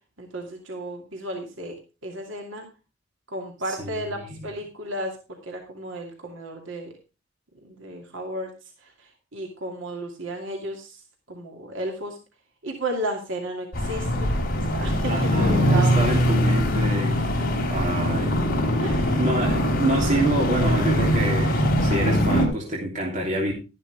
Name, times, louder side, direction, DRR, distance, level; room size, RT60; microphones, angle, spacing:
voice 1, 0.2-1.8 2.0-2.7 3.3-5.2 5.4-6.9 7.6-8.5 8.8-11.0 11.3-12.2 12.6-14.3 14.6-15.1 15.4-16.1 18.8-19.2, right 1 dB, 75° right, 2 dB, 2.6 m, -33 dB
voice 2, 3.7-4.5 15.1-18.4 18.7-23.5, right 1 dB, 40° right, -2 dB, 3.1 m, -27 dB
sound 1, 13.7-22.5, equal, 50° left, 3.3 m, -22 dB
13.0 x 11.0 x 3.3 m, 0.30 s
head